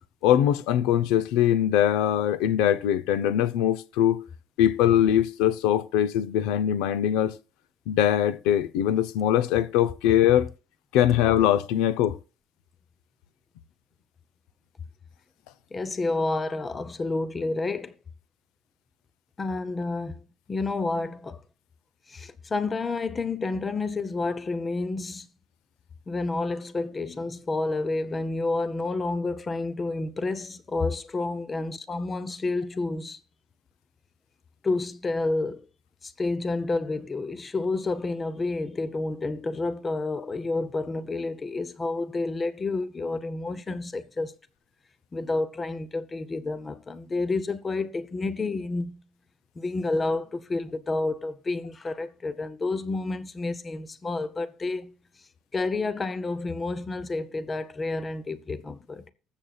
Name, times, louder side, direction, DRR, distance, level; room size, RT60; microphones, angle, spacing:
voice 1, 0.2-4.2 4.6-7.3 7.9-10.5 10.9-12.2, left 11 dB, 75° left, 0.8 m, -22 dB
voice 2, 15.7-17.9 19.4-20.2 20.5-21.4 22.1-25.3 26.1-33.2 34.6-35.7 36.0-44.3 45.1-49.0 49.6-54.9 55.5-59.1, left 3 dB, 15° left, 0.6 m, -29 dB
20.0 x 7.5 x 2.4 m
cardioid pair, 175°, 0 cm